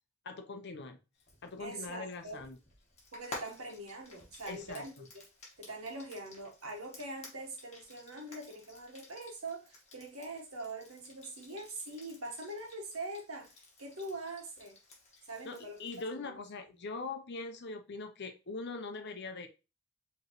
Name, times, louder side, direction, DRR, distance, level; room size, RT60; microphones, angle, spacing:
voice 1, 0.2-1.0 1.4-2.6 4.5-4.8 15.4-19.5, left 3 dB, 50° left, 6 dB, 0.6 m, -42 dB
Frying (food), 1.2-16.0, left 2 dB, 30° left, 1.5 m, -53 dB
voice 2, 1.6-2.4 3.1-5.2 5.6-14.8 15.3-15.8 16.1-16.4, right 2 dB, 65° right, 2 dB, 1.3 m, -43 dB
5.0 x 3.1 x 3.0 m, 0.29 s
head